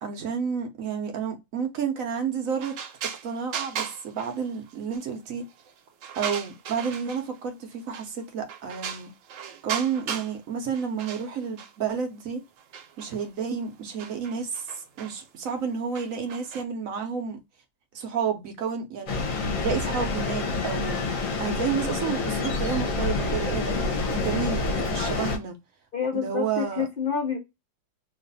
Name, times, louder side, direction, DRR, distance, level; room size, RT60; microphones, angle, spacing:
voice 1, 0.0-2.8 3.2-5.4 6.2-9.1 9.6-12.4 13.0-17.4 17.9-19.2 19.5-23.8 24.1-25.5 26.1-26.8, right 6 dB, 60° right, 0.9 m, -30 dB
sound 1, 2.6-5.0 5.4-7.4 7.9-8.2 8.5-10.4 10.7-12.0 12.6-16.6, right 8 dB, 80° right, 1.4 m, -37 dB
sound 2, 19.1-25.4, left 3 dB, 55° left, 1.1 m, -27 dB
voice 2, 25.9-27.4, left 6 dB, 80° left, 0.4 m, -28 dB
3.1 x 2.4 x 3.9 m
omnidirectional pair, 2.1 m